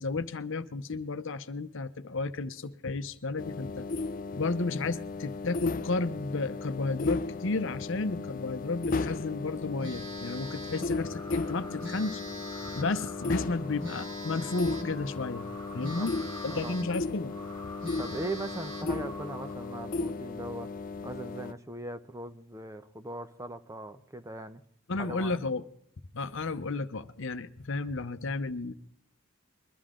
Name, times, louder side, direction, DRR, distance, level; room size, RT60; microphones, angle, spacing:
voice 1, 0.0-3.9 4.3-12.2 12.7-15.5 15.7-16.2 16.4-17.3 24.9-25.6 26.1-28.7, left 3 dB, 65° left, 11 dB, 0.8 m, -33 dB
sound 1, 3.4-21.5, left 3 dB, 40° left, 0.5 m, -35 dB
Telephone, 9.8-11.0 11.8-13.0 13.8-15.0 15.8-17.0 17.4-17.5 17.8-19.0, equal, 65° right, 3.9 m, -43 dB
sound 2, 10.4-20.1, left 1 dB, 15° left, 3.7 m, -48 dB
voice 2, 15.7-16.1 16.5-16.8 18.0-20.7 21.0-24.6 25.0-25.4, right 2 dB, 15° right, 9 dB, 0.7 m, -39 dB
22.0 x 13.0 x 3.7 m, 0.64 s
head